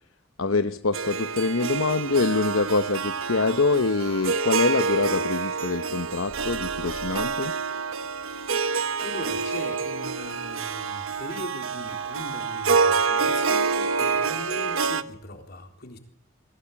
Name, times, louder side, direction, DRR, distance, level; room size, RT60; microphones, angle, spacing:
voice 1, 0.4-7.5, left 3 dB, 75° left, 10 dB, 0.9 m, -25 dB
Harp, 0.9-15.0, right 5 dB, 80° right, 1.2 m, -27 dB
sound 1, 6.3-7.5, equal, 30° left, 3.2 m, -44 dB
voice 2, 8.2-16.0, left 1 dB, 50° left, 4 dB, 3.9 m, -39 dB
Wind instrument woodwind instrument, 9.1-14.5, right 6 dB, 35° right, 3.6 m, -37 dB
22.5 x 16.5 x 8.8 m, 0.77 s
head